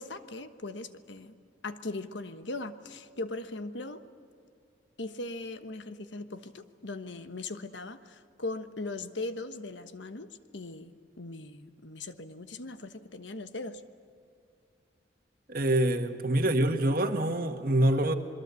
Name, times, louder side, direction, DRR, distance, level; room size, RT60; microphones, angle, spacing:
voice 1, 0.0-1.4 1.6-4.0 5.0-10.3 10.5-13.8, left 2 dB, 70° left, 10 dB, 1.3 m, -39 dB
voice 2, 15.5-18.1, right 1 dB, 50° right, 6 dB, 1.6 m, -25 dB
26.5 x 22.5 x 8.3 m, 2.5 s
head